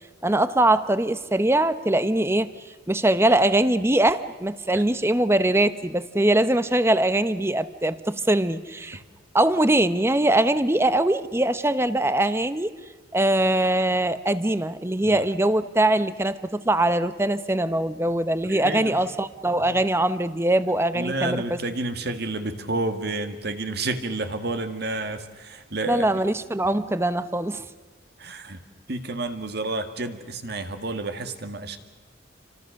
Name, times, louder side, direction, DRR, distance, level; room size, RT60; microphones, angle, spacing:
voice 1, 0.2-2.5 2.9-9.0 9.3-12.7 13.1-21.6 25.9-27.6, right 1 dB, 15° right, 13 dB, 0.8 m, -22 dB
voice 2, 18.4-19.0 19.5-19.8 21.0-26.2 28.2-28.6 28.9-31.8, right 2 dB, 55° right, 7 dB, 2.0 m, -30 dB
29.5 x 25.5 x 6.5 m, 1.4 s
head